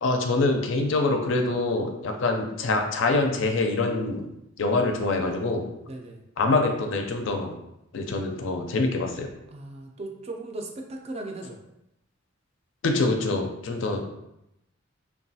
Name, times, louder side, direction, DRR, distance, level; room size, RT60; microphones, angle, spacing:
voice 1, 0.0-4.3 4.6-5.7 6.4-7.6 7.9-9.3 12.8-14.0, left 3 dB, 65° left, 4 dB, 0.4 m, -25 dB
voice 2, 5.9-6.2 9.5-11.6 13.7-14.0, right 2 dB, 30° right, 2 dB, 0.4 m, -38 dB
3.0 x 2.3 x 2.7 m, 0.85 s
head